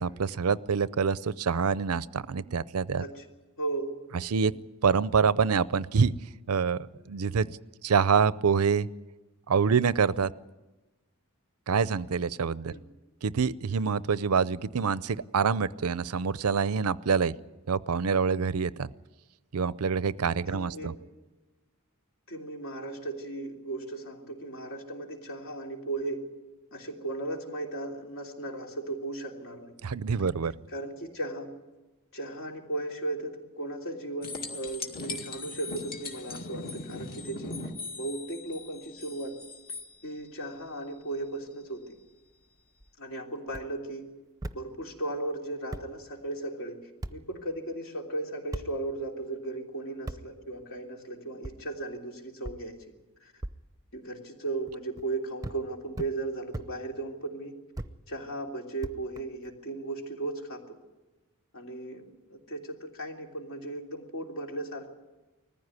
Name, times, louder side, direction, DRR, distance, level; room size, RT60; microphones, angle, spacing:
voice 1, 0.0-3.0 4.2-6.1 6.5-7.6 7.8-8.9 9.5-10.3 11.7-12.7 13.2-17.3 17.7-18.9 19.5-20.9 29.8-30.5, right 6 dB, 90° right, 18 dB, 0.6 m, -26 dB
voice 2, 3.6-4.0 12.7-12.9 20.5-21.0 22.3-26.3 26.7-29.7 30.7-31.5 32.1-39.4 40.0-41.9 43.0-44.1 44.5-52.9 53.2-53.3 53.9-57.5 58.1-60.8 61.5-64.9, right 2 dB, 65° left, 1 dB, 3.1 m, -36 dB
sound 1, 34.2-39.9 42.8-42.9, left 3 dB, 45° left, 2.1 m, -39 dB
sound 2, 43.5-43.7 44.4-44.6 45.3-45.4 45.7-45.9 47.0-47.1 48.5-48.7 50.1-50.2 51.4-51.6 52.4-52.6 53.4-53.5 54.7-55.1 55.4-55.6 56.0-56.1 56.5-56.7 57.7-57.9 58.8-59.5, right 1 dB, 15° right, 0.7 m, -37 dB
20.5 x 15.0 x 9.7 m, 1.2 s
head